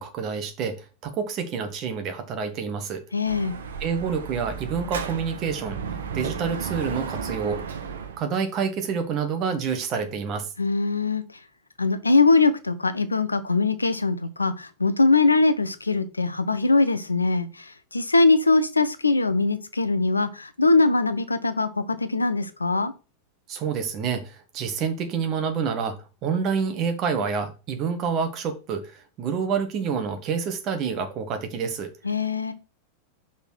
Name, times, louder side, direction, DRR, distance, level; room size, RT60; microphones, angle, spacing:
voice 1, 0.0-3.0 3.8-5.8 6.1-7.6 8.2-10.5 23.5-26.0 26.2-31.9, right 6 dB, 35° right, 7 dB, 1.6 m, -28 dB
voice 2, 3.1-3.6 10.6-11.2 11.8-22.9 32.0-32.5, left 3 dB, 80° left, 12 dB, 0.7 m, -22 dB
Dog / Motorcycle, 3.2-8.2, right 6 dB, 65° right, 0.9 m, -33 dB
5.8 x 4.3 x 6.0 m, 0.31 s
figure-of-eight pair, 90°, 0 cm